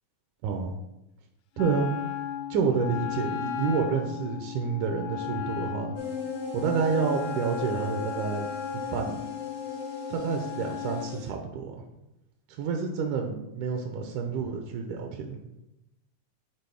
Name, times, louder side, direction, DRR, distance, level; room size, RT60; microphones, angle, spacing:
voice 1, 0.4-0.8 1.6-2.0 2.5-5.9 6.5-8.5 8.7-9.2 10.1-11.8 12.6-15.4, right 5 dB, 85° right, 3 dB, 2.1 m, -29 dB
Wind instrument woodwind instrument, 1.6-11.2, left 9 dB, 80° left, 1.8 m, -36 dB
sound 1, 5.9-11.3, left 4 dB, 40° right, 0.5 m, -38 dB
9.2 x 3.8 x 3.5 m, 0.90 s
omnidirectional pair, 3.6 m